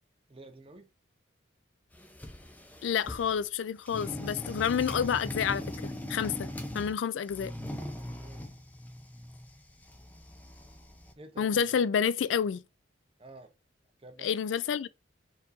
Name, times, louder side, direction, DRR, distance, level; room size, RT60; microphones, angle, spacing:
voice 1, 0.3-0.9 8.2-8.5 11.2-11.8 13.2-13.5 14.0-14.4, right 2 dB, 30° right, 0.7 m, -50 dB
sound 1, 1.9-3.5 3.9-7.0 7.3-11.1, left 1 dB, 10° left, 0.5 m, -40 dB
voice 2, 2.8-6.5 6.7-7.5 11.4-12.6 14.2-14.9, left 7 dB, 75° left, 0.3 m, -29 dB
4.3 x 4.1 x 2.6 m
head